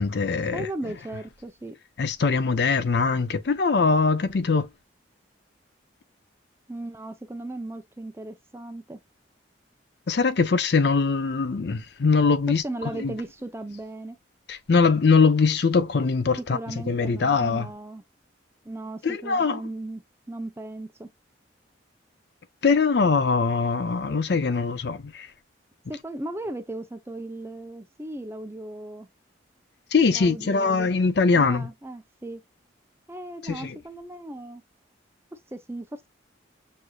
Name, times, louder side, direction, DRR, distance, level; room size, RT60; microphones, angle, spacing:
voice 1, 0.0-0.7 2.0-4.7 10.1-12.6 13.0-13.1 14.5-16.6 16.9-17.7 19.0-19.6 22.6-25.3 29.9-31.7 33.4-33.8, left 4 dB, 60° left, 0.5 m, -22 dB
voice 2, 0.5-1.8 6.7-9.0 12.6-14.2 16.4-18.0 18.6-20.0 20.3-21.1 25.9-29.1 30.1-30.9 31.3-32.4 33.1-34.6 35.3-36.1, right 1 dB, 15° right, 0.5 m, -36 dB
6.3 x 2.6 x 2.3 m
head